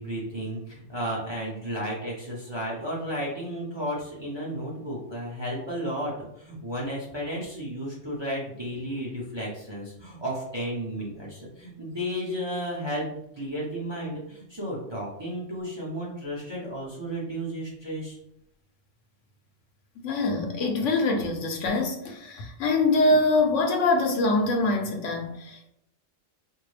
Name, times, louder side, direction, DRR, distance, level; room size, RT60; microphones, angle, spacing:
voice 1, 0.0-18.2, equal, 25° right, -5 dB, 0.7 m, -33 dB
voice 2, 20.0-25.7, left 2 dB, 70° left, 2 dB, 0.9 m, -24 dB
4.4 x 2.0 x 3.2 m, 0.76 s
omnidirectional pair, 1.4 m